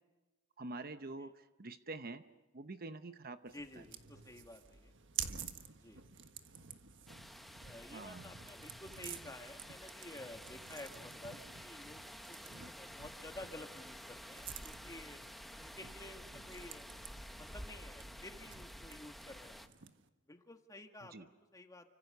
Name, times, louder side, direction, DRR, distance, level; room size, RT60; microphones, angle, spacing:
voice 1, 0.6-2.2 2.5-3.8 5.3-5.5 7.9-8.3 21.0-21.3, right 2 dB, 45° right, 10 dB, 0.9 m, -47 dB
voice 2, 3.5-4.9 5.8-6.0 7.6-15.2 15.6-19.7 20.3-21.9, left 1 dB, 15° left, 5 dB, 2.0 m, -52 dB
sound 1, 3.5-20.1, right 8 dB, 60° right, 1.4 m, -51 dB
sound 2, 7.1-19.7, equal, ahead, 1.0 m, -51 dB
29.5 x 25.5 x 6.8 m, 1.1 s
head